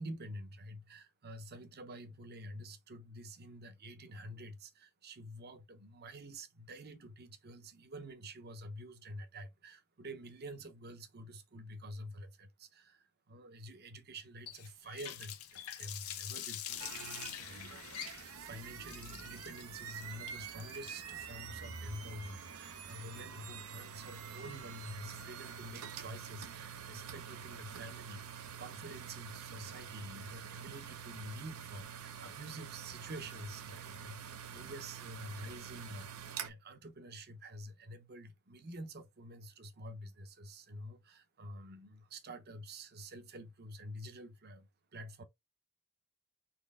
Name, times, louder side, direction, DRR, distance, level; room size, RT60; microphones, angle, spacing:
voice 1, 0.0-45.2, equal, 45° right, 0.8 m, -48 dB
Water tap faucet, 14.5-23.4, left 10 dB, 75° left, 0.7 m, -46 dB
sound 1, 16.7-36.5, right 7 dB, 80° right, 0.7 m, -47 dB
4.3 x 3.0 x 3.6 m
head